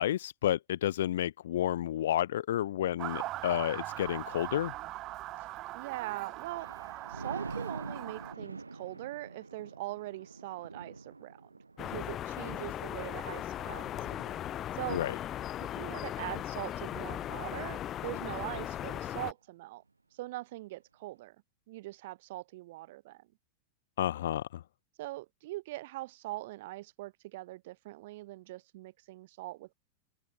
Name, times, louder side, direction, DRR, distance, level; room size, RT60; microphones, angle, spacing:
voice 1, 0.0-4.7 14.9-15.1 24.0-24.6, left 12 dB, 60° left, 0.8 m, -31 dB
Motor vehicle (road) / Siren, 3.0-8.3, right 16 dB, 35° right, 1.0 m, -41 dB
voice 2, 5.7-6.7 7.1-11.5 11.8-13.9 14.7-15.0 15.6-19.8 20.1-21.3 21.7-23.3 25.0-29.7, right 18 dB, 50° right, 1.7 m, -42 dB
Thunder, 6.3-17.5 18.0-18.3, right 3 dB, 80° right, 7.2 m, -46 dB
sound 1, 11.8-19.3, left 11 dB, 30° left, 3.2 m, -38 dB
open air
figure-of-eight pair, 90°, 0 cm